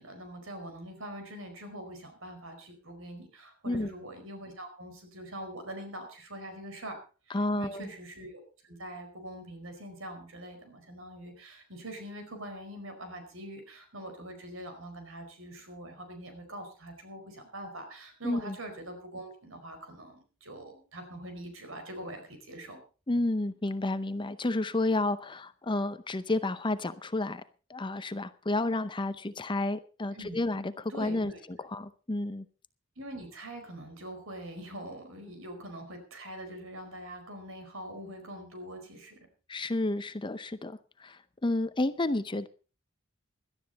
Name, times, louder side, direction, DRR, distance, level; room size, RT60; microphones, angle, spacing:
voice 1, 0.0-7.0 7.3-22.8 30.1-30.4 30.9-31.4 33.0-39.3, right 1 dB, 75° right, 4.7 m, -43 dB
voice 2, 7.3-7.9 18.2-18.6 23.1-27.4 27.7-31.3 31.6-32.4 39.5-42.5, left 2 dB, 25° left, 0.6 m, -31 dB
17.5 x 12.5 x 4.1 m
head